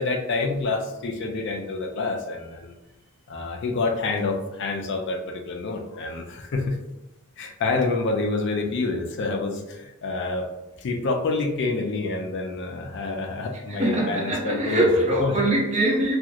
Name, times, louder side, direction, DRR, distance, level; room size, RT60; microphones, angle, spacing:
voice 1, 0.0-2.7 3.3-6.8 7.4-10.4 10.8-14.9 15.2-15.5, left 3 dB, 55° left, 0.4 m, -27 dB
voice 2, 13.7-16.2, right 1 dB, 30° right, 0.6 m, -22 dB
2.8 x 2.4 x 2.4 m
head